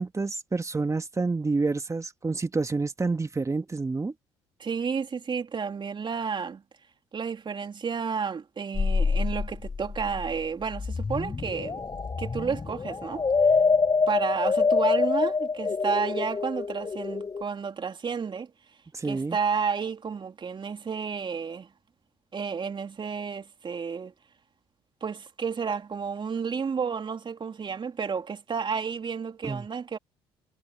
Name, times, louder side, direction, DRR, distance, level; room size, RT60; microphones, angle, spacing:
voice 1, 0.0-4.1 18.9-19.4 29.4-29.7, right 3 dB, 25° right, 2.7 m, -28 dB
voice 2, 4.6-6.6 7.1-11.8 12.2-13.2 14.1-18.5 19.0-21.7 22.3-24.1 25.0-30.0, right 6 dB, 40° right, 3.5 m, -31 dB
sound 1, 8.7-17.4, left 4 dB, 30° left, 4.9 m, -26 dB
hypercardioid pair, 55°, 13 cm